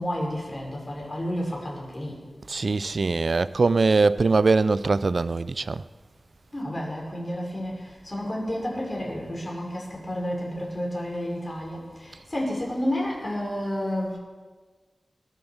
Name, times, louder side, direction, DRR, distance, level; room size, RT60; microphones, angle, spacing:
voice 1, 0.0-2.2 6.5-14.2, equal, 30° left, 5.5 m, -31 dB
voice 2, 2.5-5.8, right 3 dB, 60° right, 0.4 m, -22 dB
21.0 x 7.5 x 7.3 m
wide cardioid pair, 60°, 0 cm